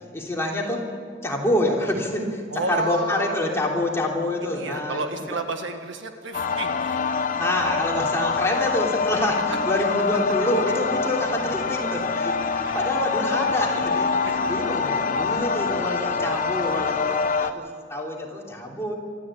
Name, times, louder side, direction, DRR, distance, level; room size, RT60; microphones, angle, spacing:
voice 1, 0.1-0.9 1.2-5.2 7.4-18.9, left 1 dB, 15° left, -2 dB, 3.2 m, -27 dB
voice 2, 2.5-3.4 4.5-7.1 12.6-12.9, right 3 dB, 70° right, 6 dB, 1.7 m, -31 dB
sound 1, 6.3-17.5, left 5 dB, 45° left, 0.9 m, -25 dB
25.0 x 13.5 x 8.8 m, 2.1 s
head